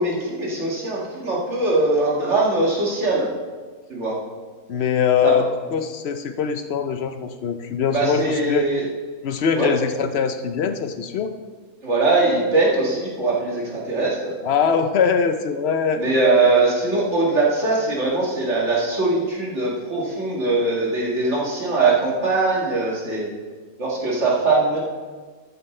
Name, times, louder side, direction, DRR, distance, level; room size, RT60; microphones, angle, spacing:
voice 1, 0.0-3.3 3.9-4.2 5.2-5.3 7.9-8.9 9.5-9.7 11.8-14.3 16.0-23.3 23.8-24.8, right 2 dB, 50° right, -4 dB, 2.2 m, -21 dB
voice 2, 4.7-8.6 9.2-11.3 14.4-16.0, left 7 dB, 55° left, 8 dB, 0.8 m, -22 dB
13.0 x 7.9 x 3.2 m, 1.5 s
omnidirectional pair, 1.5 m